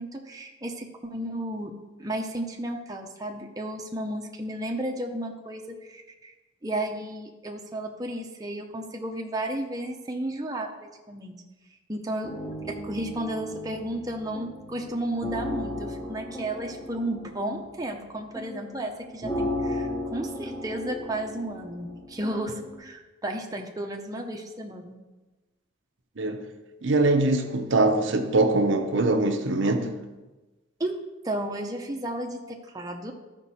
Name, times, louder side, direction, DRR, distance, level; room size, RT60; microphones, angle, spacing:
voice 1, 0.0-1.7 2.0-6.3 6.6-11.3 11.9-25.0 30.8-30.9 31.2-33.1, right 1 dB, 20° right, 0.7 m, -33 dB
sound 1, 12.2-22.7, left 1 dB, 15° left, 0.9 m, -35 dB
voice 2, 26.2-26.5 26.8-29.9, right 2 dB, 60° right, 0.8 m, -23 dB
13.0 x 5.2 x 4.2 m
head